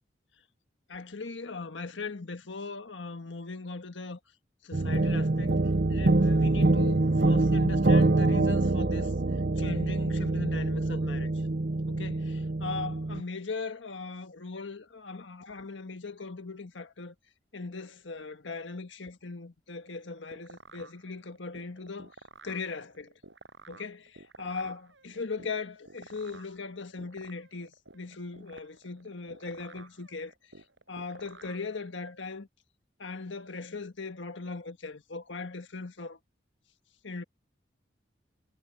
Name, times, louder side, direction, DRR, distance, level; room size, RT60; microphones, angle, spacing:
voice 1, 0.9-4.2 4.6-9.1 9.6-11.3 11.9-17.1 17.5-22.1 22.4-23.1 23.7-30.3 30.9-32.5 33.0-36.2 37.0-37.2, left 4 dB, 90° left, 1.5 m, -39 dB
sound 1, 4.7-13.2, right 2 dB, 55° right, 0.8 m, -25 dB
sound 2, 19.8-32.2, right 3 dB, 85° right, 5.9 m, -52 dB
head